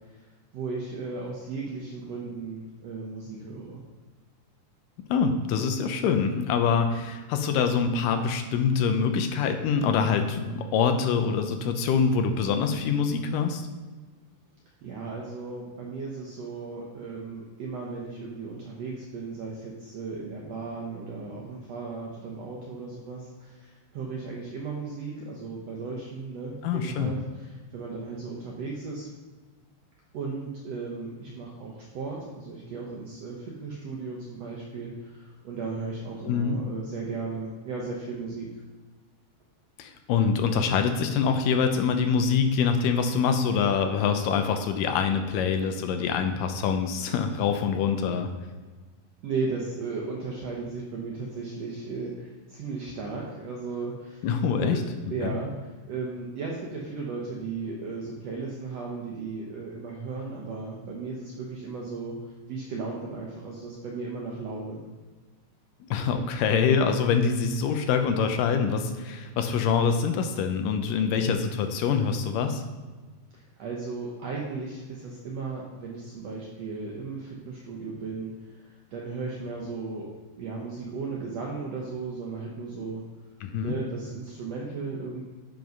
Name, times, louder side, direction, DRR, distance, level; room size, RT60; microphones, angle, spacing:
voice 1, 0.5-3.8 14.8-29.1 30.1-38.5 49.2-54.3 54.6-54.8 55.1-62.2 62.5-64.8 73.3-80.1 80.4-83.0 83.6-85.2, right 4 dB, 70° right, -2 dB, 1.6 m, -36 dB
voice 2, 5.1-13.7 26.6-27.1 36.2-36.6 39.8-48.3 54.2-54.8 55.2-55.3 65.8-72.6 83.4-83.8, left 6 dB, 80° left, 6 dB, 2.2 m, -25 dB
7.7 x 5.3 x 5.3 m, 1.3 s
omnidirectional pair, 4.1 m